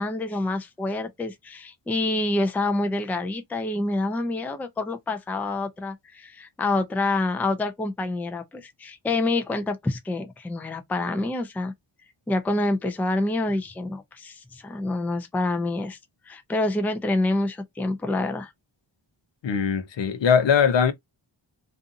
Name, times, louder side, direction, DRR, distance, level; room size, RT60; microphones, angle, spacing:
voice 1, 0.0-11.7 12.3-16.0 16.3-18.5, left 2 dB, 5° left, 0.4 m, -27 dB
voice 2, 19.4-20.9, left 7 dB, 65° left, 0.6 m, -20 dB
2.5 x 2.5 x 2.5 m
wide cardioid pair, 100°, 49 cm